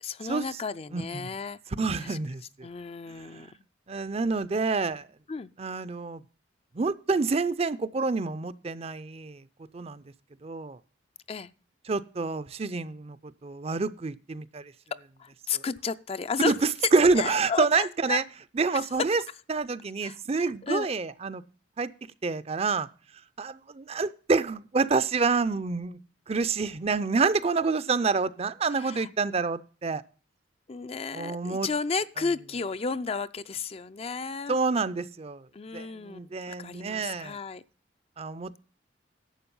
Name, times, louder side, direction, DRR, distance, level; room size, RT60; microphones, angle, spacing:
voice 1, 0.0-1.6 2.0-2.2 2.6-3.5 5.3-5.5 11.3-11.5 15.2-16.6 17.2-18.2 20.0-20.9 28.8-29.1 30.7-34.6 35.5-37.6, left 5 dB, 35° left, 0.4 m, -33 dB
voice 2, 0.9-1.3 1.8-2.7 3.2-3.4 3.9-5.1 5.6-6.2 6.7-9.4 9.7-10.0 10.4-10.8 11.8-13.2 13.4-14.7 15.5-15.6 16.4-18.2 18.6-19.2 19.5-21.4 21.8-21.9 22.2-22.9 23.4-26.0 26.3-30.0 31.1-31.7 34.5-35.5 35.7-37.4 38.2-38.6, right 4 dB, 35° right, 0.5 m, -27 dB
11.5 x 7.7 x 5.4 m
head